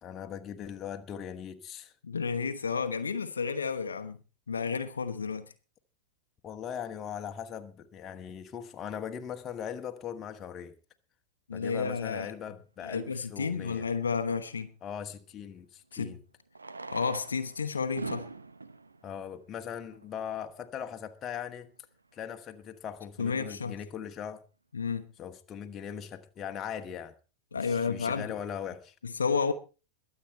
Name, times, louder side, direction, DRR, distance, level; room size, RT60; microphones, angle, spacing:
voice 1, 0.0-1.9 6.4-10.7 11.5-13.9 14.8-16.2 19.0-21.7 22.1-24.4 25.2-27.1 27.5-28.9, left 8 dB, 25° left, 1.4 m, -40 dB
voice 2, 2.0-4.2 4.5-5.5 11.5-12.3 12.8-14.7 15.9-16.1 16.9-18.3 23.2-23.8 24.7-25.1 27.5-28.3 29.0-29.5, left 5 dB, 70° left, 1.0 m, -31 dB
Fireworks, 13.0-13.1 15.3-15.4 16.5-20.2 21.0-21.1 21.3-21.4 21.6-21.7 22.2-22.4, right 3 dB, 80° right, 1.0 m, -43 dB
22.0 x 8.0 x 4.3 m
figure-of-eight pair, 90°, 0 cm